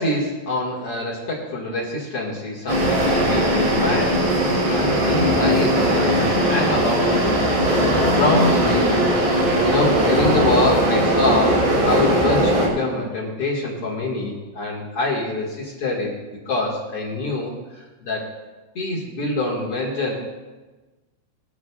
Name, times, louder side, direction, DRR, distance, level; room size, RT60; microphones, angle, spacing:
voice 1, 0.0-4.2 4.7-7.5 8.0-9.0 9.6-16.1 16.5-17.5 18.0-18.3 18.8-20.1, left 2 dB, 50° left, -4 dB, 1.9 m, -25 dB
sound 1, 2.7-12.7, right 1 dB, 45° right, 3.6 m, -19 dB
21.0 x 13.0 x 2.4 m, 1.2 s
omnidirectional pair, 5.3 m